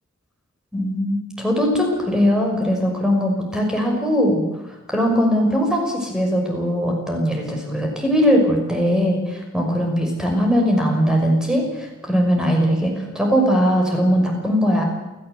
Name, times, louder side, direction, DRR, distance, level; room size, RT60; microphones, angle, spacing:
voice 1, 0.7-4.4 4.9-14.8, equal, 5° right, 1 dB, 5.9 m, -20 dB
29.0 x 15.0 x 8.1 m, 1.1 s
head